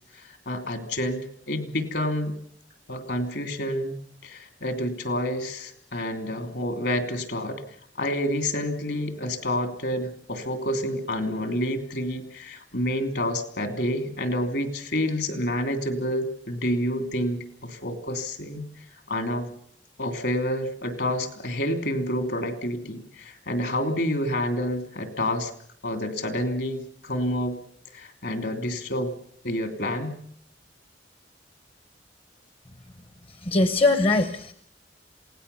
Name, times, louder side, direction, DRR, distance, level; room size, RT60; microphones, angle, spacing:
voice 1, 0.1-2.3 2.9-4.0 4.2-7.6 8.0-18.7 19.1-19.5 20.0-25.5 25.8-27.6 27.9-29.1 29.4-30.2, left 1 dB, 65° left, 8 dB, 2.9 m, -28 dB
voice 2, 33.5-34.5, left 2 dB, 30° left, 11 dB, 0.9 m, -21 dB
27.5 x 18.0 x 6.9 m, 0.63 s
head